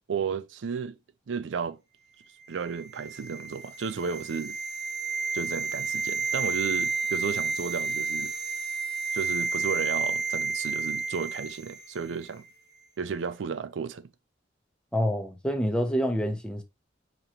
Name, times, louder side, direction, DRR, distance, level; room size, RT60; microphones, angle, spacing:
voice 1, 0.1-1.0 1.3-1.8 2.5-4.6 5.3-8.3 9.1-12.4 13.0-14.1, right 6 dB, 90° right, 0.4 m, -33 dB
sound 1, 2.6-11.8 12.1-12.2, right 4 dB, 20° right, 0.9 m, -31 dB
voice 2, 14.9-16.6, equal, 5° left, 0.6 m, -27 dB
5.1 x 2.9 x 2.9 m
head